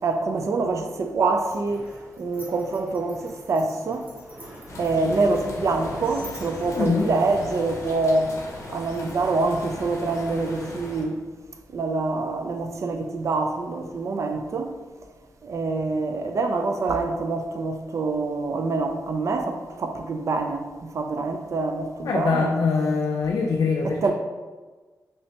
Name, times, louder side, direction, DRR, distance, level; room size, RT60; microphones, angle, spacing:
voice 1, 0.0-4.1 4.8-8.4 8.7-11.2 11.7-14.8 15.4-22.5 23.8-24.1, right 3 dB, 55° right, 0.4 m, -26 dB
sound 1, 1.4-7.6, equal, 25° right, 1.1 m, -45 dB
sound 2, 4.7-11.1, left 1 dB, 50° left, 0.7 m, -38 dB
voice 2, 6.7-7.1 22.0-24.1, left 4 dB, 70° left, 0.4 m, -23 dB
3.1 x 3.1 x 2.8 m
wide cardioid pair, 95°, 6 cm